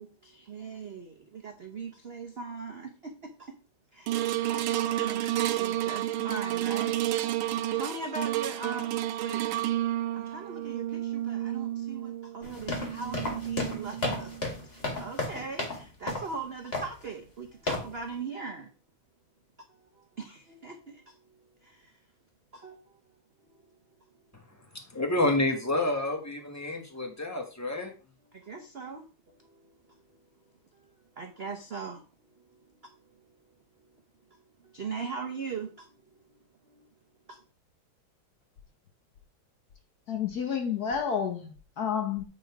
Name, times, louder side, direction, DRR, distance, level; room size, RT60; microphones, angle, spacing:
voice 1, 0.0-3.5 3.9-5.3 5.6-7.0 7.7-8.9 9.2-9.5 10.1-14.3 15.0-18.7 19.7-21.1 21.6-21.9 22.5-22.8 28.3-29.0 29.4-30.0 31.2-32.0 32.8-32.9 34.6-35.9 36.7-36.9 37.3-37.4, right 4 dB, 55° right, 0.7 m, -40 dB
sound 1, 4.1-14.5 15.0-15.1, right 13 dB, 80° right, 1.4 m, -31 dB
sound 2, 12.4-15.8 16.1-16.3 16.7-17.0 17.7-17.9, left 2 dB, 30° left, 2.1 m, -33 dB
voice 2, 24.9-27.9, left 2 dB, 10° left, 1.0 m, -28 dB
voice 3, 40.1-42.2, left 7 dB, 55° left, 1.3 m, -30 dB
9.1 x 3.7 x 4.7 m
omnidirectional pair, 2.3 m